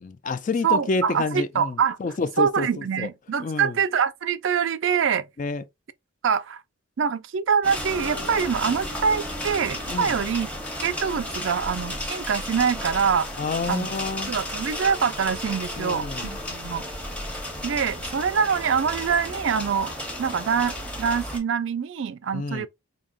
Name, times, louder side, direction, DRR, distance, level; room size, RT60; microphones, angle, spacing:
voice 1, 0.0-3.1 3.4-3.8 5.4-5.6 9.9-10.2 13.4-14.3 15.8-16.3 22.3-22.7, left 4 dB, 35° left, 0.3 m, -29 dB
voice 2, 0.6-2.0 2.4-5.2 6.2-6.6 7.0-10.5 10.8-13.3 13.7-13.9 14.3-16.8 17.6-19.9 20.2-22.7, right 6 dB, 55° right, 0.4 m, -24 dB
sound 1, 7.6-21.4, left 1 dB, 5° left, 0.8 m, -33 dB
sound 2, 7.9-12.0, left 3 dB, 85° left, 0.8 m, -46 dB
5.0 x 2.8 x 2.4 m
head